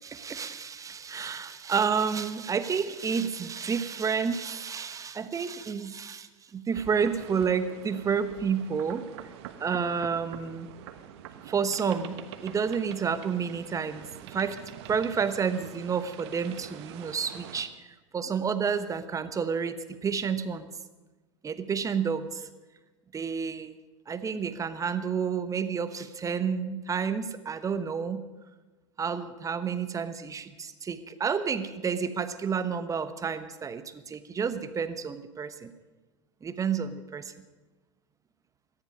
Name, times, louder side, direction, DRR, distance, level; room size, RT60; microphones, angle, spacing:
voice 1, 0.0-9.1 9.6-10.7 11.5-14.6 14.9-17.7 18.1-20.7 21.4-22.5 23.1-23.7 24.1-28.2 29.0-35.7 36.4-37.3, right 6 dB, 20° right, 12 dB, 1.1 m, -30 dB
sound 1, 6.7-17.6, right 10 dB, 55° right, 1.1 m, -45 dB
18.0 x 13.5 x 5.3 m, 1.2 s
figure-of-eight pair, 85°, 16 cm